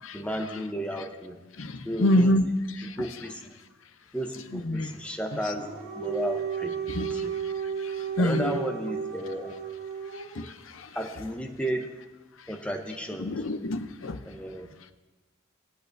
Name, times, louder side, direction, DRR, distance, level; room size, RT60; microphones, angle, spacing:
voice 1, 0.1-1.4 1.8-2.3 3.0-3.5 4.1-5.7 5.9-7.3 8.2-9.5 10.9-11.9 12.5-13.3 14.2-14.7, equal, 5° left, 3 dB, 0.8 m, -33 dB
voice 2, 1.6-2.4 2.7-3.0 4.5-4.9 6.9-8.6 10.1-11.0 13.2-14.2, left 1 dB, 70° left, 9 dB, 0.7 m, -28 dB
Dog, 5.3-10.5, right 7 dB, 75° right, 4.2 m, -33 dB
19.5 x 8.6 x 2.7 m, 1.2 s
head